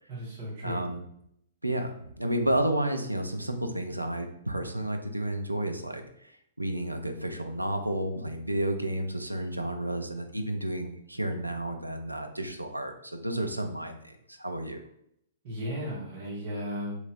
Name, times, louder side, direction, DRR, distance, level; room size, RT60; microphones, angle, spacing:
voice 1, 0.1-0.8 15.4-17.0, equal, 45° right, -6 dB, 1.1 m, -35 dB
voice 2, 0.6-1.0 1.6-6.3 6.6-14.8, right 1 dB, 90° right, 5 dB, 0.4 m, -31 dB
3.0 x 2.7 x 2.4 m, 0.73 s
figure-of-eight pair, 110°, 0 cm